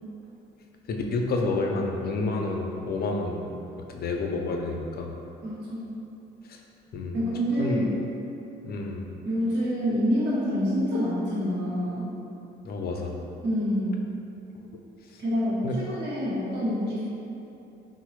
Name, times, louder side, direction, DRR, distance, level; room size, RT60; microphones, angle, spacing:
voice 1, 0.9-3.5 3.9-5.1 6.5-6.6 6.9-7.2 7.6-7.9 8.6-9.1 12.6-13.1 15.6-15.8, left 3 dB, 50° left, 1 dB, 0.4 m, -29 dB
voice 2, 5.4-5.9 7.1-7.9 9.2-12.1 13.4-14.0 15.2-17.0, equal, 60° right, -8 dB, 0.9 m, -27 dB
3.9 x 2.0 x 3.1 m, 2.8 s
cardioid pair, 90°, 20 cm